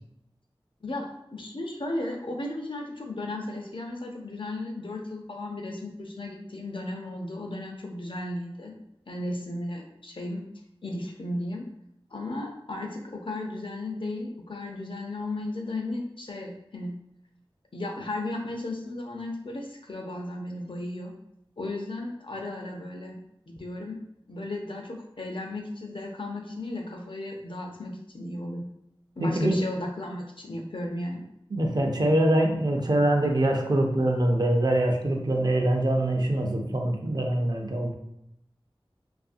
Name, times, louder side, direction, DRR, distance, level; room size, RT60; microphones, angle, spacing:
voice 1, 0.8-8.7 9.1-10.4 10.8-11.6 12.1-17.0 17.7-21.2 21.6-24.0 24.3-28.7 29.2-31.3, left 1 dB, 60° left, 1 dB, 0.5 m, -35 dB
voice 2, 29.2-29.6 31.5-37.9, right 1 dB, 45° right, 2 dB, 0.5 m, -24 dB
2.7 x 2.5 x 2.5 m, 0.80 s
wide cardioid pair, 50°, 10 cm